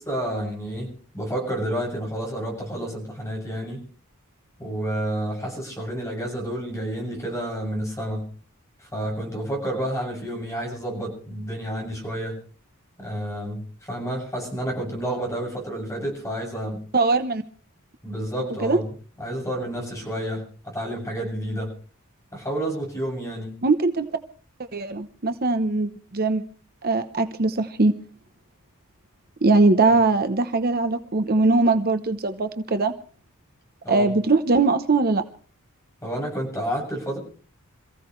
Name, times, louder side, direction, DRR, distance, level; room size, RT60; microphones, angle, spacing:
voice 1, 0.1-3.8 4.6-8.2 8.8-12.4 13.0-16.8 18.0-18.9 19.2-21.7 22.3-23.5 29.9-30.0 33.8-34.1 36.0-37.2, right 1 dB, 15° left, 0 dB, 7.6 m, -30 dB
voice 2, 16.9-17.4 18.6-18.8 23.6-24.1 24.7-26.4 26.8-28.0 29.4-33.0 33.9-35.2, right 3 dB, 45° right, 8 dB, 0.9 m, -21 dB
27.5 x 15.5 x 3.2 m, 0.41 s
head